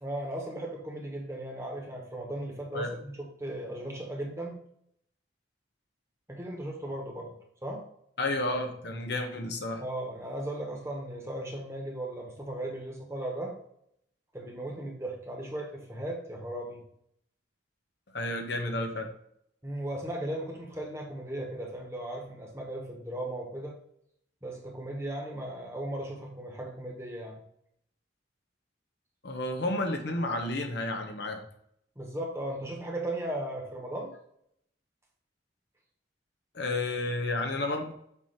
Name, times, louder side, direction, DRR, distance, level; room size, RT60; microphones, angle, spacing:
voice 1, 0.0-4.6 6.3-7.3 7.6-7.8 9.8-13.5 14.3-16.8 19.6-23.7 24.4-27.4 31.9-34.1, right 1 dB, 15° right, 0 dB, 1.4 m, -37 dB
voice 2, 8.2-9.8 18.1-19.1 29.2-31.4 36.5-37.9, left 2 dB, 60° left, 4 dB, 0.9 m, -31 dB
8.0 x 3.0 x 5.7 m, 0.71 s
head